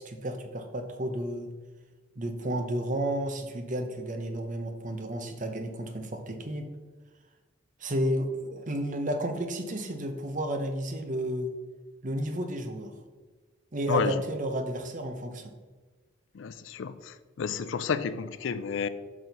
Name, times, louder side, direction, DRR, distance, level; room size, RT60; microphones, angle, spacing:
voice 1, 0.0-1.5 2.2-6.7 7.8-11.5 12.0-13.0 13.7-15.5, right 1 dB, 40° right, 6 dB, 0.8 m, -32 dB
voice 2, 16.3-18.9, left 6 dB, 75° left, 13 dB, 0.4 m, -31 dB
6.2 x 4.4 x 5.2 m, 1.3 s
head